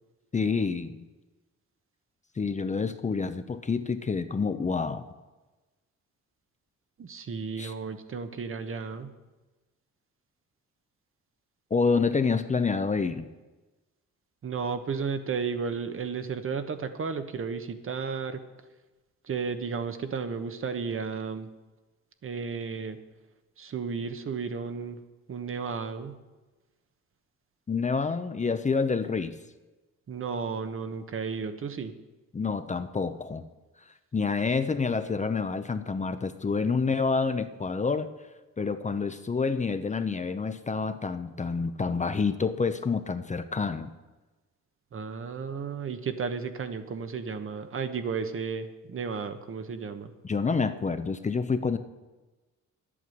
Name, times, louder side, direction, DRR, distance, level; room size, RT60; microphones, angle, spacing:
voice 1, 0.3-1.1 2.4-5.0 7.6-7.7 11.7-13.3 27.7-29.3 32.3-33.4 34.1-38.1 38.6-43.9 50.2-51.8, left 4 dB, 25° left, 10 dB, 0.7 m, -28 dB
voice 2, 7.0-9.1 14.4-18.4 19.3-21.5 22.2-23.0 23.6-25.0 25.3-26.1 30.1-32.0 44.9-50.1, right 5 dB, 45° right, 9 dB, 1.2 m, -33 dB
10.5 x 8.6 x 7.8 m, 1.2 s
cardioid pair, 90°, 30 cm